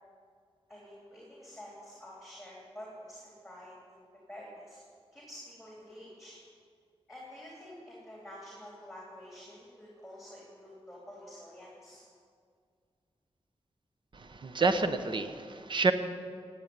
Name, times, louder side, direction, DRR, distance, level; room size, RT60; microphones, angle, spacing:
voice 1, 0.7-4.8 5.1-6.4 7.1-12.0, equal, ahead, -4 dB, 3.4 m, -49 dB
voice 2, 14.1-15.9, right 3 dB, 50° right, 9 dB, 1.0 m, -28 dB
16.5 x 8.7 x 9.4 m, 2.1 s
wide cardioid pair, 130°, 11 cm